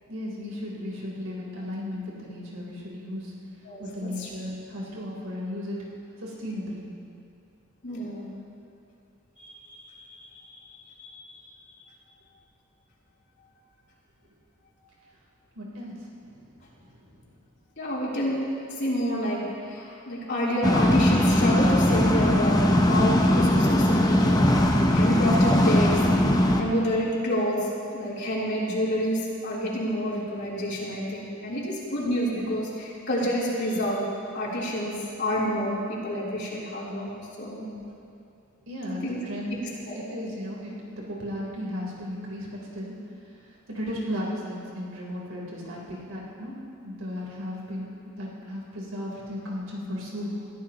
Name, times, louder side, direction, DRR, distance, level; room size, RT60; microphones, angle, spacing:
voice 1, 0.1-3.3 3.8-5.8 6.2-6.9 15.6-16.0 16.2-16.5 16.8-17.4 37.6-37.9 38.7-39.5 39.9-43.0 43.7-46.6 46.8-50.4, left 1 dB, 85° right, -4 dB, 3.8 m, -35 dB
voice 2, 3.7-4.3 7.8-8.3 9.4-9.9 10.2-10.3 11.0-11.1 17.8-18.4 18.8-26.0 26.6-27.6 27.9-34.0 34.3-37.1 37.4-37.7 39.0-39.2 39.5-39.6 39.9-40.0, equal, 55° left, -6 dB, 3.6 m, -28 dB
sound 1, 20.6-26.6, left 1 dB, 20° left, 0.9 m, -20 dB
22.0 x 14.5 x 3.0 m, 2.5 s
head